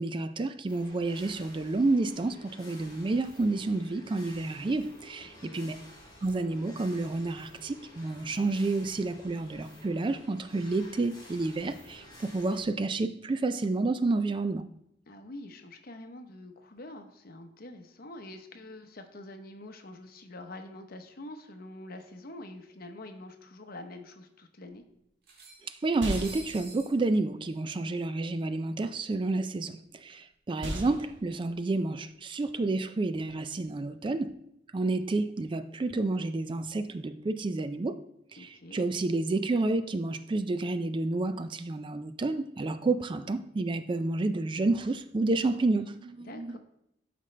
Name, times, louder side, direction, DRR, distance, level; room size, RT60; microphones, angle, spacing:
voice 1, 0.0-5.8 6.2-14.7 25.6-34.3 34.7-38.0 38.3-46.6, right 2 dB, 25° right, 0.3 m, -30 dB
sound 1, 0.7-12.6, left 1 dB, 25° left, 3.6 m, -52 dB
voice 2, 5.3-5.7 15.1-24.8 38.4-38.8 46.2-46.6, left 1 dB, 55° left, 0.9 m, -46 dB
sound 2, 21.8-21.9 22.2-22.3 23.4-23.5 23.8-23.9 25.2-27.0, right 4 dB, 55° right, 1.6 m, -48 dB
sound 3, 24.6-34.3, equal, 75° right, 1.6 m, -43 dB
12.0 x 5.2 x 3.3 m
head